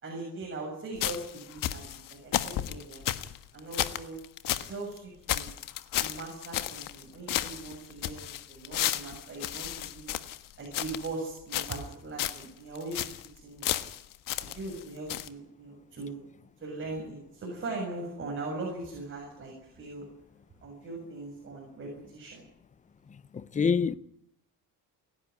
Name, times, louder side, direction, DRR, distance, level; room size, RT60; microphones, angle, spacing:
voice 1, 0.0-1.8 2.1-3.1 3.5-4.2 4.6-5.5 6.0-10.1 10.6-13.1 13.4-13.7 14.4-16.2 16.6-20.1 20.6-22.4, right 2 dB, 35° right, 7.2 m, -40 dB
sound 1, 1.0-4.7 5.0-5.1 5.3-7.0 7.3-11.1 11.5-11.9 12.2-12.5 12.8-13.3 13.6-14.8 15.1-15.3, left 12 dB, 70° left, 1.5 m, -33 dB
voice 2, 23.3-23.9, left 6 dB, 20° left, 0.8 m, -26 dB
30.0 x 11.0 x 9.5 m
cardioid pair, 135°, 34 cm